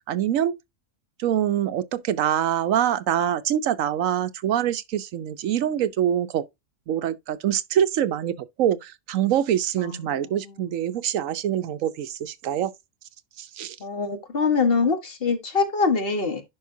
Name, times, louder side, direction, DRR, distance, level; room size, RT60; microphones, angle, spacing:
voice 1, 0.1-0.6 1.2-6.4 6.9-8.3 8.6-12.7 13.4-13.8, right 10 dB, 85° right, 1.1 m, -24 dB
voice 2, 9.8-10.5 13.8-16.4, left 4 dB, 45° left, 1.6 m, -24 dB
10.5 x 5.1 x 2.7 m
omnidirectional pair, 1.3 m